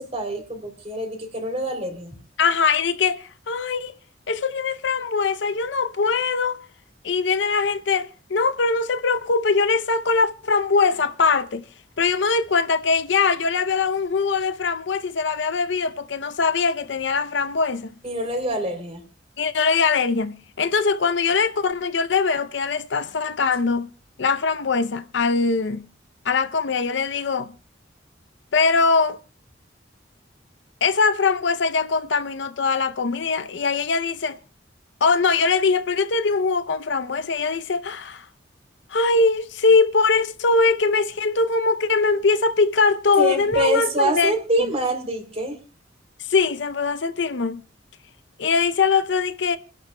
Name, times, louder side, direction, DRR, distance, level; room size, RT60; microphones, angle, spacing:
voice 1, 0.0-2.1 18.0-19.0 43.2-45.6, right 1 dB, 35° right, 3.3 m, -26 dB
voice 2, 2.4-3.9 4.3-6.6 7.0-11.6 12.0-17.9 19.4-23.9 24.2-25.9 26.2-27.5 28.5-29.2 30.8-34.4 35.0-38.3 38.9-44.3 46.3-47.6 48.4-49.6, left 4 dB, 70° left, 0.6 m, -22 dB
29.5 x 11.0 x 2.2 m
head